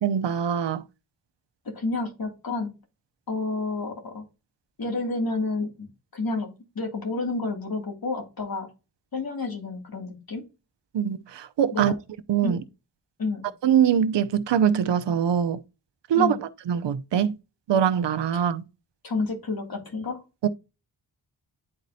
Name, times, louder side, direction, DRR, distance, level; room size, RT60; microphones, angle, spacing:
voice 1, 0.0-0.8 10.9-11.9 12.3-12.6 13.6-15.6 16.1-16.4 16.7-17.4 17.7-18.6 20.4-20.5, right 8 dB, 80° right, 0.7 m, -23 dB
voice 2, 1.6-2.7 3.3-4.2 4.8-5.9 6.1-6.5 6.7-8.7 9.1-10.4 11.7-12.0 12.4-12.6 13.2-13.5 16.1-16.4 18.3-18.5 19.0-20.2, left 3 dB, 55° left, 2.5 m, -30 dB
9.9 x 4.1 x 2.7 m
wide cardioid pair, 80°, 42 cm